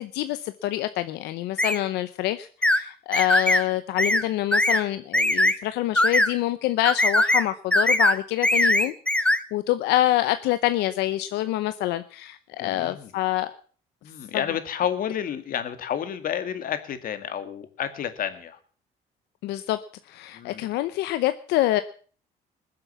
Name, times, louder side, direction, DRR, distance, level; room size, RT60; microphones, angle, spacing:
voice 1, 0.0-13.5 19.4-19.8 20.1-21.8, left 15 dB, 85° left, 11 dB, 0.8 m, -26 dB
sound 1, 1.6-1.8 2.6-2.8 3.1-3.6 4.0-4.2 4.5-4.8 5.1-5.5 5.9-6.3 6.8-7.4 7.7-8.2 8.4-9.4, left 1 dB, 5° left, 1.0 m, -20 dB
voice 2, 12.6-13.1 14.0-18.6 20.3-20.7, left 9 dB, 55° left, 10 dB, 2.1 m, -30 dB
21.0 x 7.8 x 7.2 m, 0.43 s
cardioid pair, 110°, 17 cm